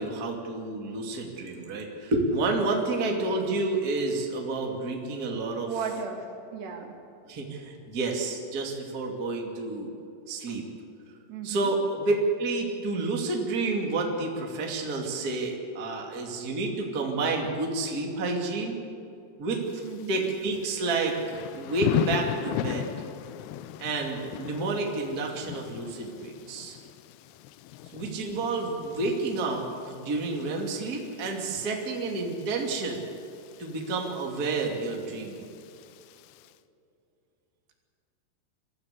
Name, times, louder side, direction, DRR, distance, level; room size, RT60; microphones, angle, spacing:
voice 1, 0.0-5.7 7.3-9.9 10.3-10.6 11.4-18.7 19.4-19.6 20.1-22.9 23.8-26.8 27.9-33.0 33.6-35.5, right 3 dB, 25° right, 0 dB, 2.3 m, -29 dB
voice 2, 5.6-6.9 11.3-11.7 19.8-20.2, right 5 dB, 70° right, 2 dB, 4.5 m, -35 dB
Thunder / Rain, 19.7-36.5, left 13 dB, 80° left, 2.5 m, -38 dB
23.5 x 15.0 x 8.3 m, 2.6 s
omnidirectional pair, 5.0 m